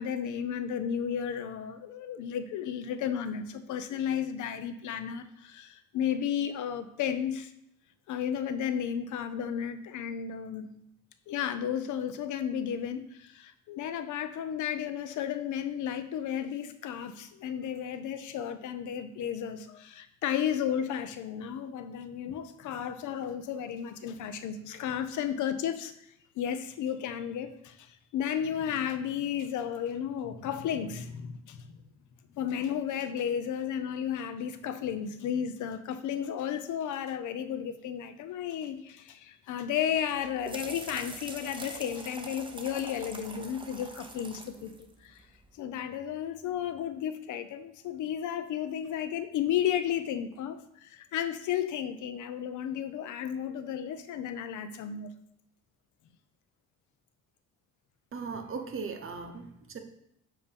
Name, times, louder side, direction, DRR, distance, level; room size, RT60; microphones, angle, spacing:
voice 1, 0.0-7.5 8.1-10.7 11.3-25.9 26.4-31.7 32.3-44.8 45.0-45.2 45.6-55.1, left 9 dB, 80° left, 10 dB, 0.6 m, -33 dB
sound 1, 40.0-45.5, right 2 dB, 15° right, 0.8 m, -45 dB
voice 2, 58.1-59.8, right 5 dB, 45° right, 5 dB, 1.0 m, -38 dB
7.2 x 2.9 x 5.2 m, 0.75 s
cardioid pair, 90°, 30 cm